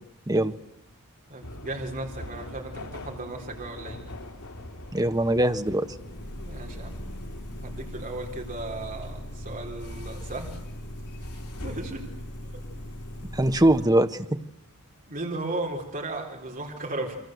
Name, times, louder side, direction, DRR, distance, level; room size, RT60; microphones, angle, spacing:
voice 1, 1.3-4.0 6.5-7.0 7.6-10.6 11.3-12.1 15.1-17.2, right 2 dB, 40° right, 1 dB, 4.0 m, -35 dB
sound 1, 1.4-13.9, left 1 dB, 85° left, 4.0 m, -39 dB
voice 2, 4.9-5.9 13.3-14.4, right 1 dB, 15° right, 9 dB, 1.1 m, -22 dB
30.0 x 24.5 x 7.9 m, 0.80 s
head